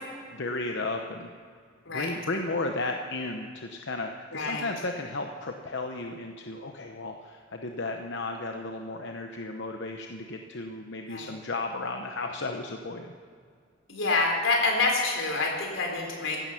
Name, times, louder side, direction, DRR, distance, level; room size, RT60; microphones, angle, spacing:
voice 1, 0.3-1.3 1.9-13.1, left 2 dB, 65° left, 4 dB, 1.0 m, -34 dB
voice 2, 4.3-4.6 11.1-11.3 13.9-16.4, left 3 dB, 90° left, 1 dB, 3.9 m, -27 dB
16.0 x 12.5 x 5.8 m, 2.1 s
head